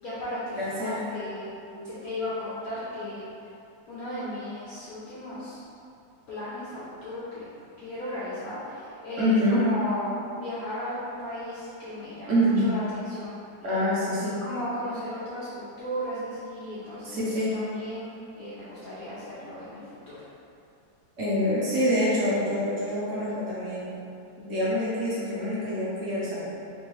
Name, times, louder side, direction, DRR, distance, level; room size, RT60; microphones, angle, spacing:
voice 1, 0.0-1.5 1.9-3.3 3.9-5.6 6.3-7.4 7.8-13.8 14.4-20.2, left 1 dB, 65° left, -11 dB, 1.0 m, -35 dB
voice 2, 0.6-1.0 1.7-1.9 3.0-3.1 9.2-9.7 12.3-12.7 13.6-14.4 17.0-17.6 21.2-24.1 24.4-26.4, equal, 65° right, -8 dB, 0.7 m, -26 dB
3.3 x 3.1 x 3.1 m, 2.7 s
omnidirectional pair, 2.1 m